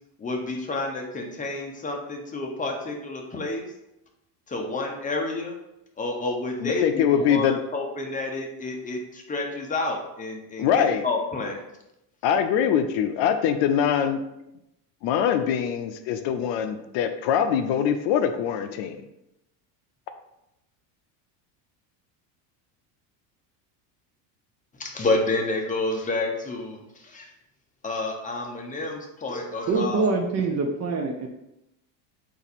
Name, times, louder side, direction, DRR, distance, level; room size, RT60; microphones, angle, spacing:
voice 1, 0.2-3.6 4.5-5.5 6.0-9.0 9.3-11.6 24.8-26.8 27.1-27.2 27.8-30.0, left 2 dB, 15° left, 1 dB, 0.7 m, -29 dB
voice 2, 6.6-7.6 10.6-11.1 12.2-14.2 15.0-19.0, left 8 dB, 65° left, 8 dB, 0.6 m, -23 dB
voice 3, 29.7-31.3, right 3 dB, 35° right, 3 dB, 0.6 m, -25 dB
4.0 x 2.7 x 4.1 m, 0.87 s
supercardioid pair, 115°, 47 cm